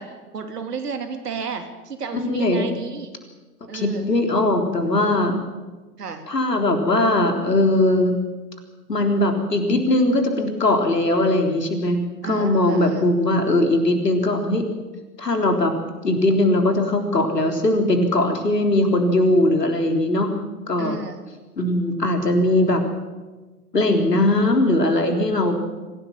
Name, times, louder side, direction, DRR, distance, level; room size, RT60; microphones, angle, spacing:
voice 1, 0.0-3.1 3.7-4.1 6.0-6.2 12.2-13.1 20.8-21.2, right 5 dB, 75° right, 7 dB, 3.1 m, -32 dB
voice 2, 2.1-2.6 3.7-5.3 6.3-8.1 8.9-14.6 15.2-15.7 16.0-20.3 20.7-21.0 21.6-22.8 23.7-25.6, left 1 dB, 85° left, 4 dB, 3.8 m, -20 dB
25.0 x 16.5 x 7.4 m, 1.2 s
figure-of-eight pair, 100°, 47 cm